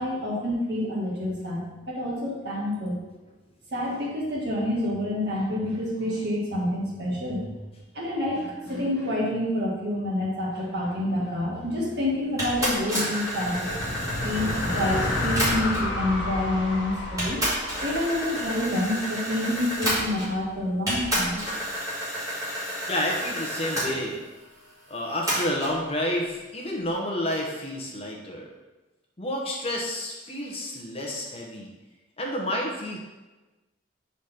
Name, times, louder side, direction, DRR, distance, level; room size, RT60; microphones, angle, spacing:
voice 1, 0.0-3.0 3.7-7.5 7.9-13.8 14.2-17.4 17.8-21.4, left 1 dB, 55° right, -4 dB, 1.7 m, -28 dB
sound 1, 12.4-16.0 16.7-16.8 17.2-20.5 20.9-23.9 25.3-25.8, equal, 15° right, 2.2 m, -30 dB
sound 2, 13.3-18.9, left 1 dB, 70° left, 1.2 m, -31 dB
voice 2, 22.9-24.2 24.9-28.5 29.2-31.7 32.2-33.0, left 1 dB, 30° left, -1 dB, 0.9 m, -30 dB
5.0 x 4.1 x 5.8 m, 1.2 s
head